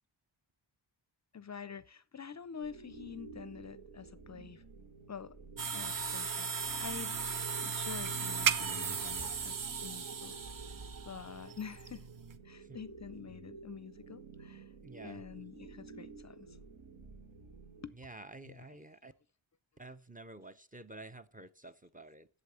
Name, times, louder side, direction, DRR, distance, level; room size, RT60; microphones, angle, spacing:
voice 1, 1.3-4.6 5.1-5.4 5.7-7.2 7.6-10.4 11.0-12.1 12.4-14.7 15.0-16.6 17.8-18.0 18.4-18.8, left 7 dB, 35° left, 0.5 m, -47 dB
sound 1, 2.6-17.9, right 4 dB, 80° right, 2.0 m, -51 dB
sound 2, 5.6-12.4, right 6 dB, 40° right, 0.8 m, -36 dB
voice 2, 14.8-15.2 18.0-19.1 19.8-22.3, right 2 dB, 20° right, 0.5 m, -50 dB
8.3 x 7.5 x 6.8 m
wide cardioid pair, 100°, 48 cm